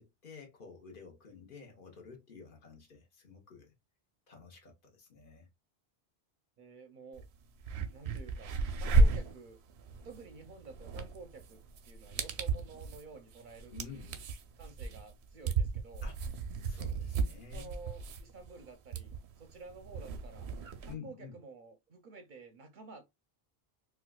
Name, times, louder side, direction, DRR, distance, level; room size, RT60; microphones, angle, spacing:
voice 1, 0.0-3.7 4.3-5.5 13.7-14.1 16.0-16.2 16.6-17.8 20.9-21.3, left 6 dB, 55° left, 1.0 m, -50 dB
voice 2, 6.6-7.3 7.9-9.6 10.0-14.2 14.6-16.1 17.5-20.5 20.8-23.0, right 4 dB, 60° right, 0.6 m, -51 dB
sound 1, 7.1-7.2 7.6-20.9, right 3 dB, 85° right, 0.8 m, -33 dB
4.3 x 2.3 x 2.2 m
omnidirectional pair, 1.1 m